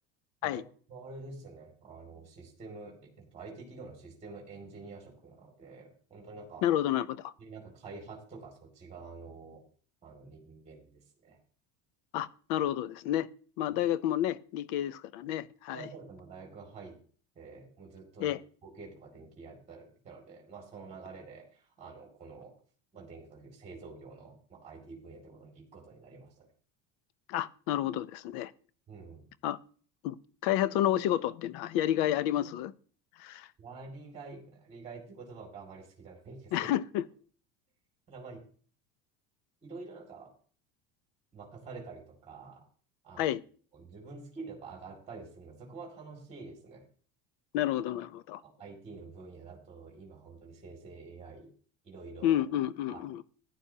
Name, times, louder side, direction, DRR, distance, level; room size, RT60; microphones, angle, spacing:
voice 1, 0.9-6.7 7.4-9.6 10.0-11.4 15.7-17.0 17.4-22.5 22.9-26.5 28.9-29.3 33.6-36.7 38.1-38.5 39.6-40.3 41.3-42.7 43.0-43.4 43.7-46.9 48.4-51.5 51.8-52.4 52.9-53.0, right 4 dB, 20° right, 2.4 m, -48 dB
voice 2, 6.6-7.3 12.1-13.3 13.6-15.8 18.2-18.4 27.3-28.5 29.4-29.6 30.0-30.2 30.4-32.7 33.2-33.5 36.5-37.0 43.2-43.4 47.5-48.4 52.2-53.2, left 12 dB, 65° left, 0.8 m, -30 dB
14.5 x 10.5 x 2.8 m
cardioid pair, 170°, 33 cm